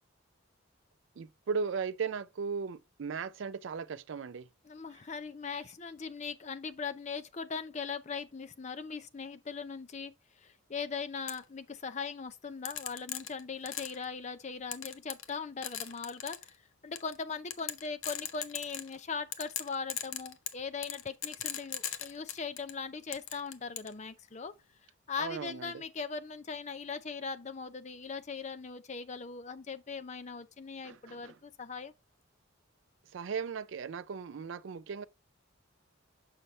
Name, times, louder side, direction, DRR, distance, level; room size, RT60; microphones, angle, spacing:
voice 1, 1.2-4.5 25.2-25.8 30.8-31.4 33.1-35.0, right 5 dB, 65° right, 0.4 m, -37 dB
voice 2, 4.6-16.5 16.8-24.5 25.1-31.9, left 5 dB, 35° left, 0.5 m, -40 dB
sound 1, 11.3-11.4 12.7-14.0 14.7-15.4 15.6-16.5 17.0-17.1 17.5-19.0 19.3-22.7 23.1-23.9, left 10 dB, 80° left, 0.7 m, -38 dB
6.5 x 5.6 x 3.1 m
head